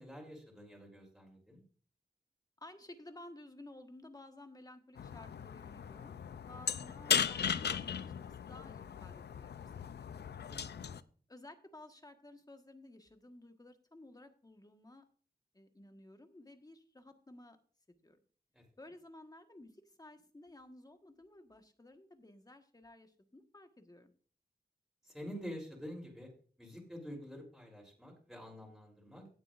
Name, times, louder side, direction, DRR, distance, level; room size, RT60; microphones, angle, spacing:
voice 1, 0.0-1.6 10.5-11.0 18.5-18.6 25.0-26.3 26.6-29.3, equal, ahead, -2 dB, 3.6 m, -48 dB
voice 2, 2.6-6.2 6.5-10.2 11.3-15.1 15.5-17.6 17.9-18.2 18.8-24.1, left 1 dB, 20° left, 6 dB, 1.4 m, -55 dB
sound 1, 5.0-11.0, left 8 dB, 75° left, 0.5 m, -37 dB
17.0 x 7.8 x 2.5 m, 0.42 s
wide cardioid pair, 75°, 17 cm